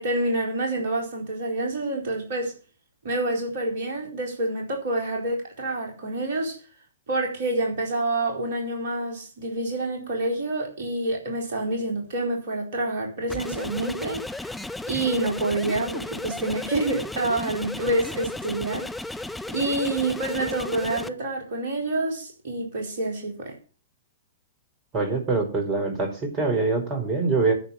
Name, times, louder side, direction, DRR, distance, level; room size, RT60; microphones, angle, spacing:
voice 1, 0.0-2.5 3.0-6.6 7.1-14.5 14.9-18.9 19.5-23.5, right 2 dB, 55° right, 4.1 m, -27 dB
sound 1, 13.3-21.1, left 2 dB, 5° left, 0.7 m, -34 dB
voice 2, 24.9-27.5, right 3 dB, 30° right, 4.6 m, -24 dB
10.0 x 7.4 x 7.4 m
figure-of-eight pair, 100°, 0 cm